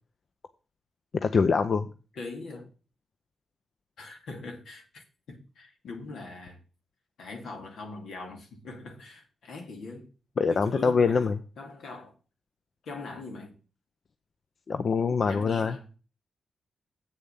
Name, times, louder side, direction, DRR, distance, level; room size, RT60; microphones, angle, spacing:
voice 1, 1.2-1.9 10.4-11.3 14.7-15.8, left 5 dB, 60° left, 0.6 m, -24 dB
voice 2, 2.1-2.7 4.0-5.0 5.3-6.6 7.2-10.1 10.5-12.1 12.8-13.6 15.2-15.9, left 3 dB, 85° left, 2.4 m, -41 dB
8.0 x 7.0 x 5.6 m
cardioid pair, 65°, 0 cm